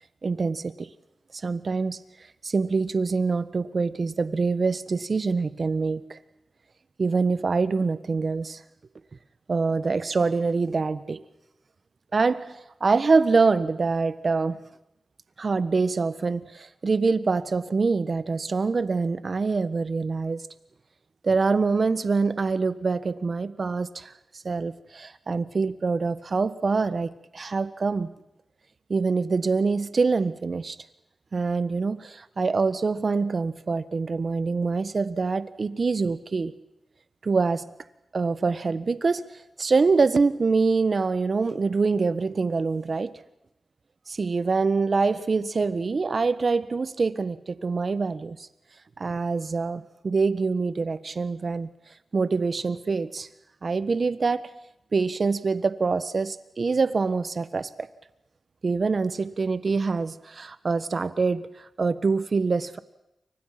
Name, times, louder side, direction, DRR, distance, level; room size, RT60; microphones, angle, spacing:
voice 1, 0.2-0.9 1.4-2.0 2.4-6.2 7.0-8.6 9.5-11.2 12.1-14.6 15.4-20.4 21.2-24.1 24.4-28.1 28.9-30.8 31.3-36.5 37.2-37.7 38.1-39.3 39.6-43.1 44.1-48.5 49.0-51.7 52.1-53.3 53.6-54.5 54.9-57.9 58.6-62.8, right 4 dB, 55° right, 1.3 m, -25 dB
29.0 x 24.5 x 5.9 m
cardioid pair, 60°, 0 cm